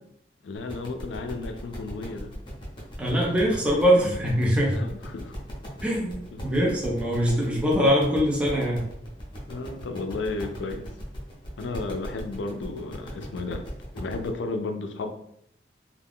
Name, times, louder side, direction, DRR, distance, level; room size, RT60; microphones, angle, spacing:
voice 1, 0.4-2.3 3.1-3.2 4.7-5.4 6.3-6.5 9.5-10.9 11.6-15.1, left 3 dB, 85° left, 6 dB, 0.4 m, -33 dB
sound 1, 0.6-14.3, equal, 30° left, 0.8 m, -40 dB
voice 2, 3.0-4.8 5.8-8.9, equal, 5° right, -4 dB, 0.6 m, -23 dB
2.3 x 2.3 x 3.5 m, 0.72 s
head